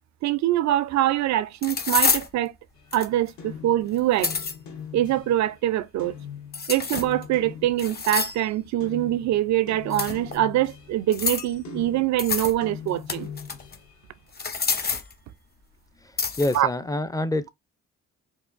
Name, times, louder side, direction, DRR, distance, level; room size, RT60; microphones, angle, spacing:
voice 1, 0.2-2.5 2.9-4.3 4.9-6.1 6.7-13.3 16.5-16.7, right 13 dB, 65° right, 0.5 m, -24 dB
sound 1, 0.7-0.8 1.6-2.3 2.9-3.3 4.0-4.5 6.5-7.2 7.8-8.5 9.9-10.4 11.1-11.5 12.2-12.6 12.9-13.8 14.3-15.1 16.2-16.6, left 5 dB, 30° left, 0.9 m, -27 dB
sound 2, 2.8-5.6 6.0-8.4 8.8-14.1, left 7 dB, 70° left, 1.5 m, -41 dB
voice 2, 16.4-17.5, left 1 dB, 10° left, 0.5 m, -26 dB
4.6 x 2.5 x 2.5 m
cardioid pair, 90°, 30 cm